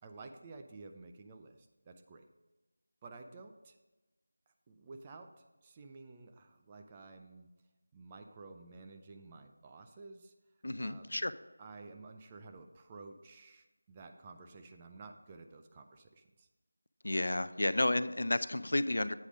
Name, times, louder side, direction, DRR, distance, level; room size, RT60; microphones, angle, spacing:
voice 1, 0.0-2.2 3.0-3.8 4.7-5.3 5.6-7.5 7.9-10.3 10.8-11.3 11.6-16.5, right 3 dB, 20° right, 5 dB, 0.5 m, -52 dB
voice 2, 10.6-11.3 17.0-19.1, left 1 dB, 65° left, 14 dB, 0.4 m, -31 dB
8.4 x 4.9 x 5.1 m, 1.1 s
figure-of-eight pair, 170°, 0 cm